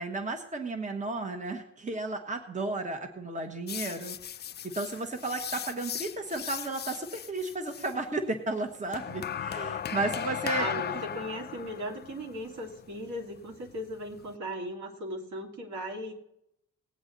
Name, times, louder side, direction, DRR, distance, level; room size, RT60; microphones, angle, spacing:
voice 1, 0.0-4.2 4.6-10.6, right 2 dB, 25° right, 6 dB, 1.5 m, -33 dB
sound 1, 3.7-7.9 8.9-14.3, left 9 dB, 35° left, 0.4 m, -37 dB
voice 2, 10.6-16.1, equal, 70° right, 2 dB, 2.9 m, -37 dB
19.5 x 8.0 x 4.0 m, 0.79 s
cardioid pair, 90°, 30 cm